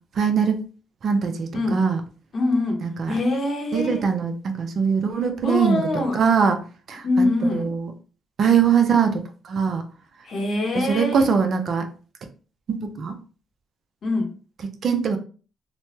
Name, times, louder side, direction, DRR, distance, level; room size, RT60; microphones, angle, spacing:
voice 1, 0.2-0.6 1.0-2.0 2.8-3.2 3.7-6.6 6.9-7.9 8.4-9.9 10.7-11.9 12.7-13.2 14.8-15.2, right 6 dB, 55° right, 0.5 m, -22 dB
voice 2, 2.3-4.1 5.4-6.2 7.0-7.7 10.2-11.3 14.0-14.3, left 2 dB, 55° left, 0.8 m, -24 dB
3.1 x 2.1 x 2.9 m
cardioid pair, 90°, 0 cm